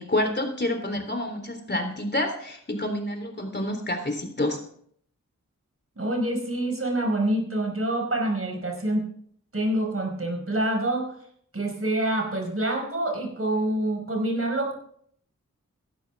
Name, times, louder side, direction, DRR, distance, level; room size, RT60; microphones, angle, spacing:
voice 1, 0.0-4.6, left 1 dB, 35° left, 4 dB, 3.4 m, -28 dB
voice 2, 6.0-9.1 9.5-11.1 11.5-14.7, right 1 dB, 45° right, 1 dB, 5.1 m, -26 dB
15.5 x 12.0 x 3.6 m, 0.63 s
wide cardioid pair, 55°, 31 cm